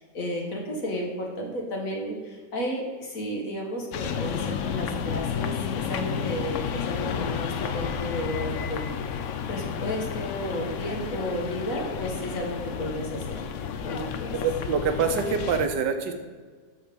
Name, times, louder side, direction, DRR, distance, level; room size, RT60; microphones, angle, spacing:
voice 1, 0.0-8.8 9.5-13.4 13.8-14.3, equal, 50° left, -1 dB, 1.8 m, -32 dB
sound 1, 3.9-15.7, left 7 dB, 75° left, 0.7 m, -31 dB
voice 2, 14.3-16.2, right 5 dB, 80° right, 7 dB, 1.4 m, -25 dB
5.9 x 5.8 x 6.8 m, 1.5 s
omnidirectional pair, 1.9 m